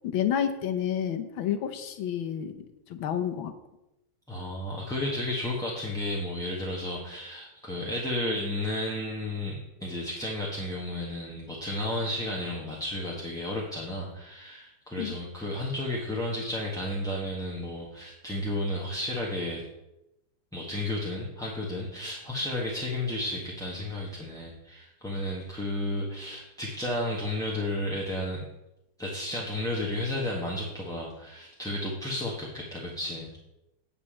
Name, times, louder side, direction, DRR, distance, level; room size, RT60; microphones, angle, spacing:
voice 1, 0.0-2.5 2.9-3.5 15.0-15.2, left 9 dB, 70° left, 7 dB, 1.7 m, -29 dB
voice 2, 4.3-19.6 20.5-28.4 29.0-33.3, left 1 dB, ahead, -5 dB, 1.3 m, -32 dB
9.6 x 5.3 x 7.6 m, 0.91 s
omnidirectional pair, 2.4 m